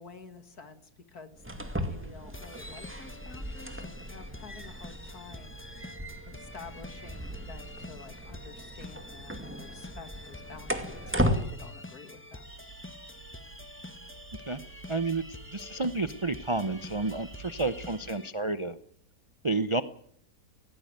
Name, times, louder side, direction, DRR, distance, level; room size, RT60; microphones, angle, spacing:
voice 1, 0.0-1.4 1.8-5.6 6.3-12.4, left 5 dB, 60° left, 8 dB, 2.7 m, -49 dB
sound 1, 1.3-11.4, equal, 5° right, 2.0 m, -36 dB
sound 2, 2.3-18.3, left 1 dB, 10° left, 0.6 m, -48 dB
sound 3, 12.5-18.1, right 4 dB, 60° right, 2.4 m, -50 dB
voice 2, 14.9-15.2 15.5-18.8 19.4-19.8, right 3 dB, 35° right, 11 dB, 0.5 m, -30 dB
18.5 x 17.0 x 9.1 m, 0.65 s
omnidirectional pair, 1.8 m